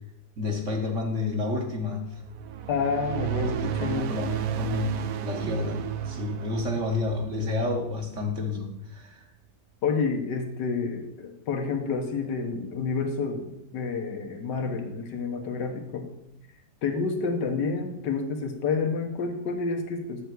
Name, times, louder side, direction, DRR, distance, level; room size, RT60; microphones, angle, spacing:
voice 1, 0.4-2.2 3.4-9.2, left 3 dB, 50° right, 2 dB, 1.4 m, -30 dB
sound 1, 2.1-8.7, right 10 dB, 70° right, 0.9 m, -33 dB
voice 2, 2.7-4.2 9.8-16.1 16.8-20.3, left 4 dB, 90° left, 3 dB, 1.7 m, -29 dB
8.0 x 6.7 x 4.6 m, 0.82 s
omnidirectional pair, 1.8 m